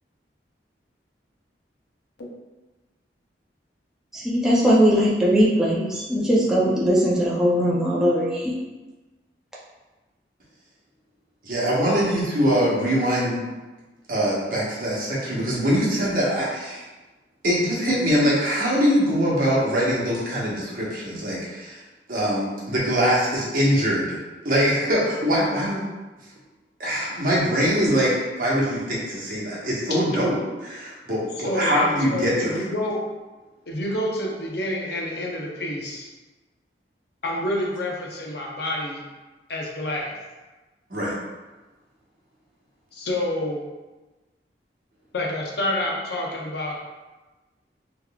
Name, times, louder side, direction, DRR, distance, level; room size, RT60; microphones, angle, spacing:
voice 1, 4.1-8.5, equal, 5° right, -7 dB, 0.5 m, -20 dB
voice 2, 11.4-13.4 14.1-16.8 17.4-21.8 22.1-24.2 24.4-25.8 26.8-32.6 40.9-41.1, equal, 50° right, -6 dB, 1.0 m, -23 dB
voice 3, 31.3-31.8 32.1-33.0 33.7-36.1 37.2-39.0 39.5-40.1 42.9-43.6 45.1-46.8, left 1 dB, 65° left, -2 dB, 0.6 m, -28 dB
3.6 x 3.0 x 2.3 m, 1.2 s
head